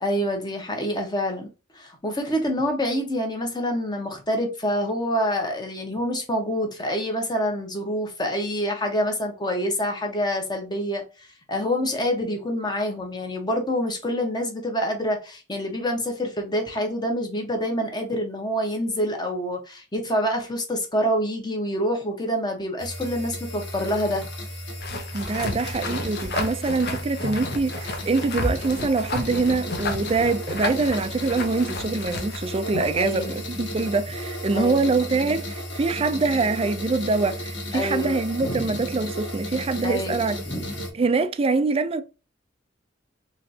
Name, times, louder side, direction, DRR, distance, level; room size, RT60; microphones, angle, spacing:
voice 1, 0.0-1.5 1.7-11.0 11.5-24.3 27.3-27.6 32.9-33.4 34.5-34.8 37.7-38.7 39.8-40.2 40.5-40.9, equal, 20° left, 1.1 m, -27 dB
sound 1, 22.8-40.9, equal, 75° left, 1.6 m, -34 dB
sound 2, 24.8-33.0, left 2 dB, 55° left, 0.9 m, -32 dB
voice 2, 25.1-40.4 40.9-42.0, right 3 dB, 30° right, 0.4 m, -24 dB
4.1 x 3.1 x 2.7 m
head